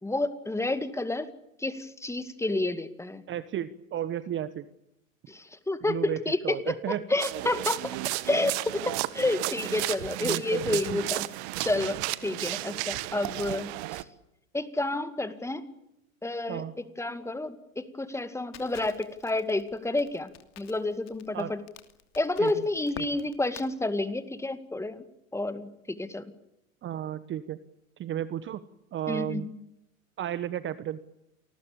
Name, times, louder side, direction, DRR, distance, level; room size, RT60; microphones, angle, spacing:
voice 1, 0.0-1.3 1.6-3.2 5.3-8.0 8.3-11.3 11.6-12.0 12.2-14.0 14.5-15.6 16.2-20.3 20.6-21.6 22.2-25.0 25.3-26.2 29.1-29.5, left 2 dB, 5° left, 12 dB, 2.2 m, -30 dB
voice 2, 3.3-4.6 5.9-6.2 6.4-7.0 10.2-11.0 16.5-16.7 21.3-21.5 22.4-22.7 23.0-23.1 26.8-27.6 28.0-28.6 28.9-29.5 30.2-31.0, right 11 dB, 25° right, 15 dB, 1.2 m, -33 dB
sound 1, 7.2-14.0, right 19 dB, 50° right, 1.7 m, -33 dB
Crackle, 18.5-23.7, left 11 dB, 40° left, 2.9 m, -48 dB
28.5 x 20.0 x 8.7 m, 0.84 s
hypercardioid pair, 100°, 42 cm